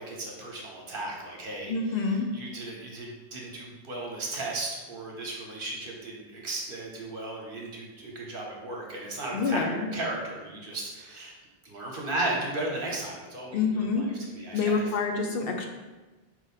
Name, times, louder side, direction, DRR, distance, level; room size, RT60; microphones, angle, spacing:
voice 1, 0.0-11.3 11.6-14.8, right 2 dB, 60° right, -1 dB, 1.0 m, -35 dB
voice 2, 1.7-2.3 9.3-9.9 13.5-14.1 14.5-15.7, left 4 dB, 65° left, 3 dB, 0.7 m, -27 dB
4.7 x 2.5 x 4.0 m, 1.2 s
omnidirectional pair, 1.1 m